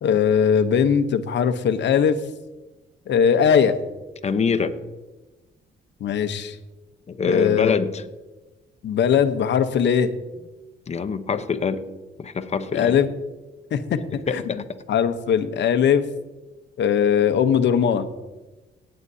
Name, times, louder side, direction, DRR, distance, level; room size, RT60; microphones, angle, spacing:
voice 1, 0.0-2.2 3.1-3.7 6.0-6.6 7.2-7.7 8.8-10.1 12.7-13.1 13.7-14.0 14.3-14.4 14.9-16.1 16.8-18.1, left 7 dB, 65° left, 10 dB, 0.9 m, -20 dB
voice 2, 4.2-4.7 7.1-8.0 10.9-11.9 12.2-13.0 14.3-14.6, left 5 dB, 35° left, 9 dB, 0.9 m, -24 dB
17.5 x 8.8 x 2.7 m, 1.1 s
cardioid pair, 90°, 20 cm